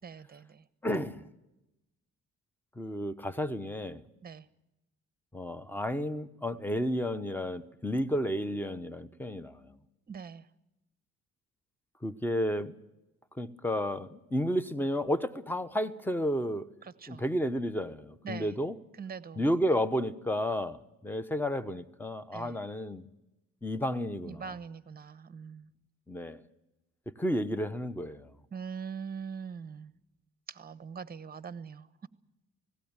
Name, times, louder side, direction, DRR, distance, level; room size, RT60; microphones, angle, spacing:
voice 1, 0.0-0.6 4.2-4.5 10.1-10.4 16.8-17.2 18.2-18.5 19.0-19.4 22.3-22.6 24.3-25.7 28.5-29.9 30.5-32.1, right 6 dB, 30° right, 16 dB, 1.0 m, -42 dB
voice 2, 0.8-1.3 2.8-4.0 5.3-9.7 12.0-12.7 13.4-16.6 17.1-18.8 19.4-23.0 23.6-24.4 26.1-26.4 27.2-28.3, equal, 5° left, 14 dB, 1.0 m, -32 dB
18.5 x 16.5 x 9.0 m, 0.95 s
cardioid pair, 90°, 30 cm